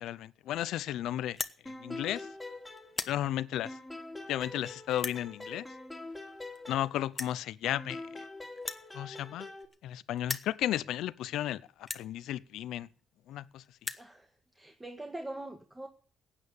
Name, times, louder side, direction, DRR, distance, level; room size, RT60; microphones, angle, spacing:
voice 1, 0.0-1.4 1.8-2.3 3.1-3.7 4.3-5.7 6.7-8.0 8.9-9.5 9.8-12.9 13.3-13.6, left 12 dB, 85° left, 0.6 m, -34 dB
sound 1, 1.3-1.6 2.2-2.5 2.8-3.2 3.9-4.0 4.9-5.2 6.3-6.4 6.5-6.6 7.1-7.4 8.6-9.9 10.2-10.5 11.2-11.3 11.8-12.1 13.0-13.1 13.3-13.4 13.6-14.1, left 3 dB, 25° left, 1.3 m, -38 dB
sound 2, 1.7-3.3 3.7-7.3 7.7-9.7, left 2 dB, 5° left, 3.5 m, -44 dB
voice 2, 3.0-3.3 14.0-14.3 14.6-15.9, right 1 dB, 15° right, 1.8 m, -43 dB
15.5 x 9.3 x 8.3 m
cardioid pair, 90°, 0 cm